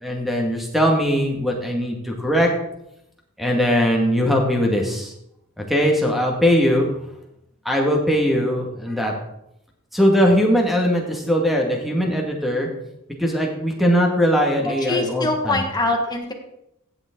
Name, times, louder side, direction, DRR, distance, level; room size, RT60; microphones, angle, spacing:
voice 1, 0.0-2.5 3.4-5.1 5.6-6.9 7.7-9.1 9.9-12.7 13.2-15.6, equal, ahead, 0 dB, 2.1 m, -20 dB
voice 2, 14.6-16.3, left 2 dB, 20° left, 2 dB, 1.6 m, -23 dB
15.5 x 7.3 x 3.9 m, 0.80 s
head